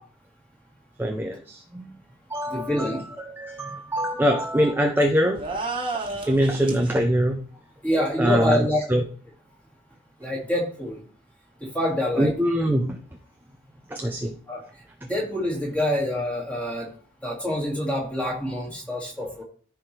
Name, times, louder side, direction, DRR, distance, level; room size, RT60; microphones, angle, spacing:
voice 1, 1.0-1.9 2.3-5.4 6.3-7.4 8.2-9.0 12.2-13.0 13.9-14.4, equal, 10° right, 3 dB, 0.5 m, -23 dB
voice 2, 2.5-3.0 7.8-8.8 10.2-11.0 11.6-12.3 14.5-14.6 15.0-16.9 17.2-19.4, left 1 dB, 5° left, -2 dB, 2.1 m, -26 dB
sound 1, 5.4-6.9, right 3 dB, 25° right, 1.4 m, -31 dB
14.0 x 4.6 x 3.3 m, 0.44 s
head